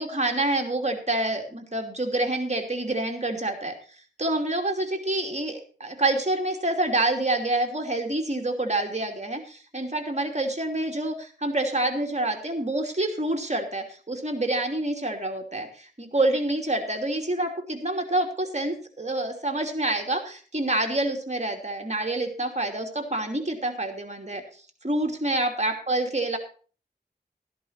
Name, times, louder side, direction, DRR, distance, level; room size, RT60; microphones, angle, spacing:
voice 1, 0.0-3.7 4.2-24.4 24.8-26.4, right 2 dB, 40° right, 4 dB, 2.9 m, -27 dB
13.5 x 11.0 x 4.4 m, 0.39 s
wide cardioid pair, 40°, 18 cm